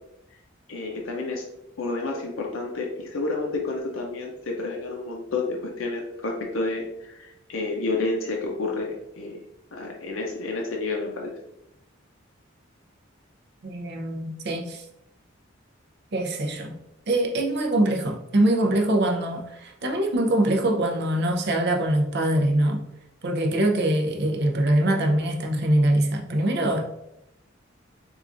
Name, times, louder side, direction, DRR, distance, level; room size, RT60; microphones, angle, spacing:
voice 1, 0.7-1.4 1.8-9.4 9.7-11.3, left 3 dB, 80° left, 0 dB, 0.6 m, -30 dB
voice 2, 13.6-14.8 16.1-16.7 17.1-22.8 23.2-26.8, right 1 dB, 55° right, 2 dB, 0.6 m, -23 dB
4.7 x 2.4 x 2.5 m, 0.83 s
head